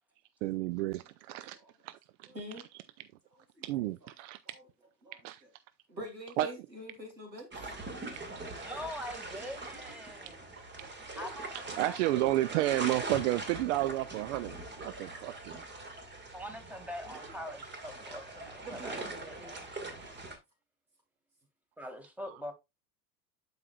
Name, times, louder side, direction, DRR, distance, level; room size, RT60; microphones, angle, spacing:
voice 1, 0.4-1.6 1.8-2.3 3.6-4.4 5.2-5.4 6.4-6.5 10.8-10.9 11.8-14.5 14.8-15.6, right 15 dB, 50° right, 0.5 m, -31 dB
voice 2, 1.3-1.7 2.3-2.6 3.3-3.6 4.0-4.1 4.4-4.6 5.0-5.2 5.9-7.6 18.6-20.2, equal, 90° right, 2.7 m, -47 dB
sound 1, 7.5-20.4, right 2 dB, 20° right, 1.8 m, -42 dB
voice 3, 8.5-10.4 11.1-12.0 16.3-19.7 21.8-22.5, left 1 dB, 5° right, 1.9 m, -43 dB
12.0 x 4.7 x 2.3 m
figure-of-eight pair, 80°, 49 cm